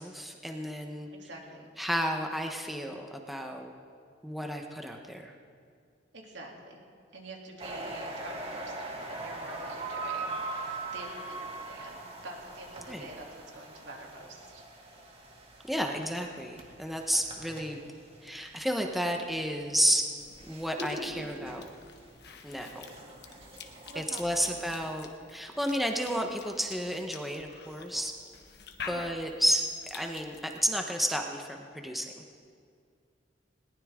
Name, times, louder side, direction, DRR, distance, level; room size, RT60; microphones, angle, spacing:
voice 1, 0.0-1.1 1.8-3.7 4.2-5.3 12.9-13.1 15.7-17.8 18.2-20.1 20.5-21.6 22.4-22.8 23.9-28.1 28.9-32.2, equal, ahead, 2 dB, 1.0 m, -31 dB
voice 2, 1.1-1.7 6.1-6.8 7.1-13.3 13.5-14.6 23.8-24.2 24.5-24.6 28.8-29.1, right 2 dB, 75° right, -1 dB, 2.9 m, -46 dB
sound 1, 7.6-18.6 19.1-24.9, right 2 dB, 35° right, 2.0 m, -42 dB
Cough / Chewing mastication, 20.2-30.6, left 5 dB, 65° left, 1.3 m, -48 dB
20.5 x 19.0 x 3.7 m, 2.2 s
head